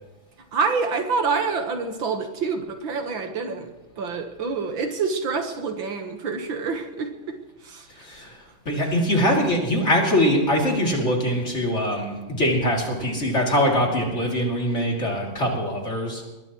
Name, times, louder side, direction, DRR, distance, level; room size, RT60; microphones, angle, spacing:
voice 1, 0.5-3.7 4.0-7.4 7.6-7.9, right 4 dB, 65° right, 5 dB, 2.1 m, -27 dB
voice 2, 8.0-8.4 8.6-16.2, equal, 30° left, -1 dB, 3.2 m, -23 dB
21.0 x 20.5 x 3.1 m, 1.1 s
omnidirectional pair, 2.3 m